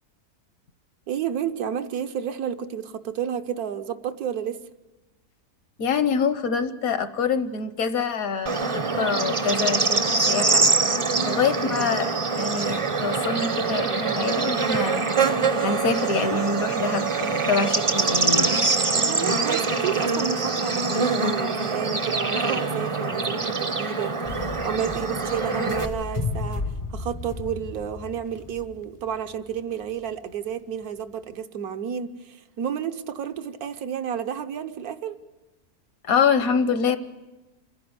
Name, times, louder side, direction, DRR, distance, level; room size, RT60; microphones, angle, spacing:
voice 1, 1.1-4.6 11.1-11.4 18.9-26.6 26.9-35.2, right 8 dB, 75° right, 9 dB, 1.3 m, -31 dB
voice 2, 5.8-10.0 10.3-10.6 11.2-15.1 15.6-18.6 36.0-37.0, left 5 dB, 70° left, 12 dB, 1.3 m, -25 dB
Bird / Insect, 8.5-25.9, right 4 dB, 30° right, 0.6 m, -24 dB
sound 1, 24.2-30.3, left 3 dB, 45° left, 0.4 m, -34 dB
27.0 x 10.5 x 9.5 m, 1.1 s
omnidirectional pair, 1.6 m